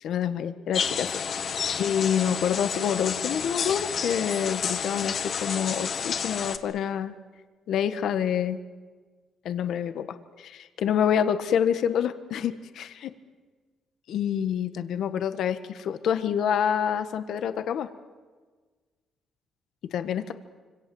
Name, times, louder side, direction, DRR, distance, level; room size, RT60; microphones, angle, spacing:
voice 1, 0.0-1.2 1.8-7.1 7.7-8.6 9.4-10.1 10.4-13.1 14.1-17.9 19.9-20.3, left 8 dB, 75° left, 10 dB, 1.5 m, -27 dB
sound 1, 0.7-6.6, left 7 dB, 55° left, 1.8 m, -30 dB
26.5 x 24.5 x 7.9 m, 1.4 s
cardioid pair, 90°, 0 cm